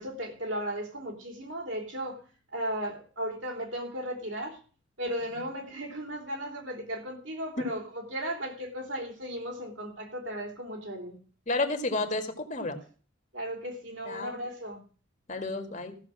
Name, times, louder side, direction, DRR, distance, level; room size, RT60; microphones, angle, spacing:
voice 1, 0.0-2.2 2.5-4.6 5.0-11.2 13.3-14.8, equal, 65° right, 3.9 m, -36 dB
voice 2, 11.5-12.8 14.1-14.4 15.3-16.0, left 2 dB, 40° left, 1.9 m, -31 dB
15.0 x 6.9 x 6.0 m
head